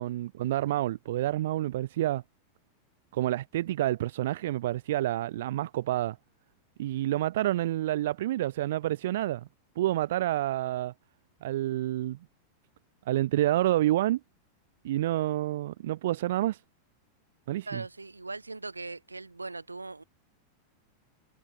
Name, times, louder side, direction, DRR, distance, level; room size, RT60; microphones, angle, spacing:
voice 1, 0.0-2.2 3.1-6.2 6.8-9.5 9.8-10.9 11.4-12.2 13.1-14.2 14.8-16.6 17.5-17.8, right 14 dB, 55° right, 2.7 m, -28 dB
voice 2, 17.7-20.0, right 3 dB, 80° right, 4.3 m, -40 dB
figure-of-eight pair, 90°, 0 cm